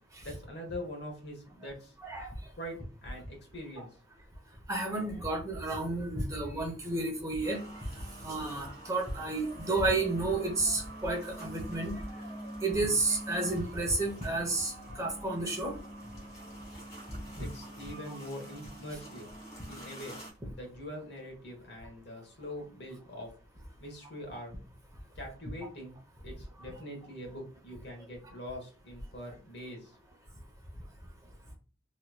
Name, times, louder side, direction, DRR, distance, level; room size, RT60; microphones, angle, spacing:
voice 1, 0.2-1.9 2.6-3.9 17.4-19.3 19.7-23.3 23.8-24.5 25.2-25.9 26.2-29.9, left 1 dB, 60° left, 2 dB, 1.2 m, -43 dB
voice 2, 2.0-2.3 4.7-7.6 7.9-11.9 12.6-15.7 17.4-17.5 24.3-24.4 26.6-26.7, right 2 dB, 15° right, 0 dB, 0.8 m, -31 dB
sound 1, 7.4-20.3, right 1 dB, 35° left, 1.2 m, -45 dB
3.1 x 2.9 x 2.2 m, 0.36 s
head